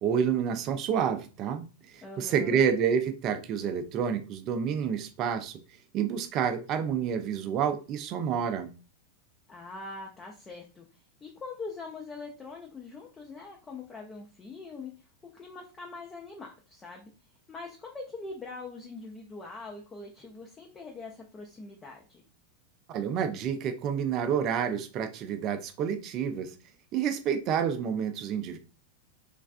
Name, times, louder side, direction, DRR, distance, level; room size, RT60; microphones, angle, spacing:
voice 1, 0.0-5.6 5.9-8.7 22.9-26.5 26.9-28.6, right 7 dB, 35° right, 9 dB, 0.5 m, -29 dB
voice 2, 2.0-2.6 9.5-10.9 11.2-14.9 15.3-17.1 17.5-22.2, left 3 dB, 20° left, 0 dB, 0.6 m, -43 dB
3.3 x 3.2 x 2.4 m, 0.34 s
figure-of-eight pair, 90°, 0 cm